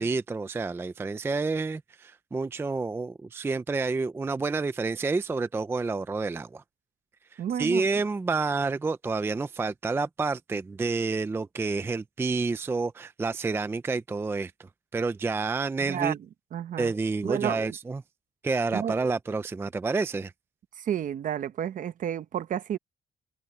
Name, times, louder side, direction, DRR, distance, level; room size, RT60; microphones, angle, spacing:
voice 1, 0.0-6.6 7.3-14.5 14.9-16.1 16.8-18.0 18.4-20.3, right 4 dB, 15° right, 0.4 m, -29 dB
voice 2, 7.4-7.9 15.8-16.2 16.5-16.9 17.2-17.7 18.7-19.0 20.8-22.8, right 9 dB, 50° right, 0.9 m, -31 dB
cardioid pair, 165°, 18 cm